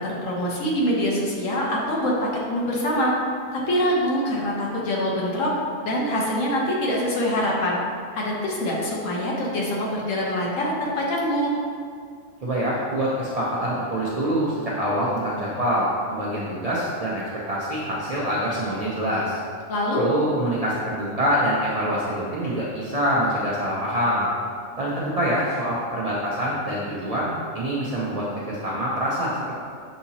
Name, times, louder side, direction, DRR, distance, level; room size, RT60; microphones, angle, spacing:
voice 1, 0.0-3.1 3.5-5.5 5.8-7.8 8.1-11.5 19.7-20.0, equal, 65° left, -3 dB, 1.1 m, -24 dB
voice 2, 12.4-17.2 17.5-19.4 20.0-24.3 24.8-27.3 27.5-29.3, equal, 60° right, -7 dB, 0.3 m, -25 dB
6.5 x 2.8 x 2.7 m, 2.2 s
omnidirectional pair, 1.5 m